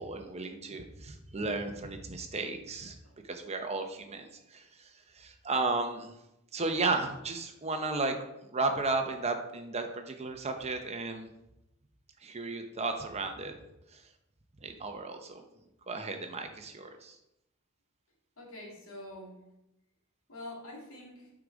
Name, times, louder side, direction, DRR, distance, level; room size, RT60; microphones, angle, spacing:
voice 1, 0.0-3.0 3.2-6.1 6.5-8.2 8.5-11.3 12.2-13.5 13.9-14.0 14.6-15.4 15.9-17.2, right 3 dB, 30° right, 5 dB, 0.7 m, -34 dB
voice 2, 18.4-19.4 20.3-21.3, left 1 dB, 75° left, -2 dB, 2.3 m, -45 dB
8.5 x 4.8 x 4.0 m, 0.86 s
head